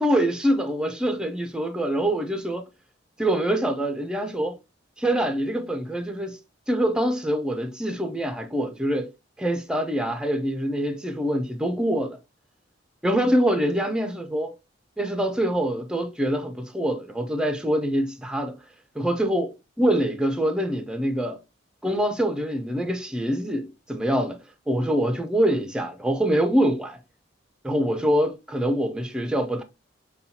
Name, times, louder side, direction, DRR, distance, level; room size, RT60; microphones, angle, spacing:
voice 1, 0.0-2.7 3.2-4.6 5.0-6.4 6.7-9.1 9.4-12.2 13.0-14.5 15.0-18.6 19.0-21.4 21.8-24.4 24.7-27.0 27.6-29.6, equal, 5° right, 0.4 m, -25 dB
5.4 x 2.3 x 2.7 m
head